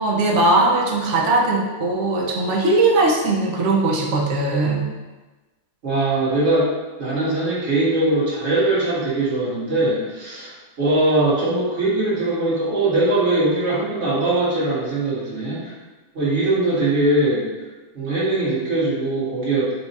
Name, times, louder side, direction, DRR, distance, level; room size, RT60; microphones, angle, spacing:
voice 1, 0.0-4.8, right 2 dB, 60° right, -1 dB, 0.8 m, -19 dB
voice 2, 5.8-6.7 7.0-15.7 16.1-17.5 17.9-19.7, right 2 dB, 45° right, -8 dB, 1.7 m, -21 dB
4.5 x 2.4 x 4.0 m, 1.2 s
omnidirectional pair, 1.7 m